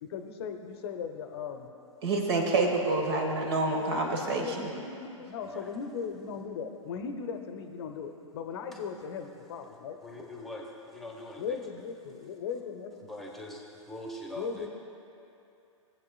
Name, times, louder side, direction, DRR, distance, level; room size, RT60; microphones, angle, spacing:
voice 1, 0.0-1.7 4.4-10.0 11.4-13.1 14.3-14.7, left 6 dB, 50° left, 6 dB, 0.7 m, -38 dB
voice 2, 2.0-4.7, right 3 dB, 50° right, 2 dB, 1.4 m, -27 dB
voice 3, 10.0-11.6 13.1-14.7, left 1 dB, ahead, -1 dB, 1.1 m, -43 dB
19.0 x 7.7 x 2.3 m, 2.7 s
figure-of-eight pair, 115°, 17 cm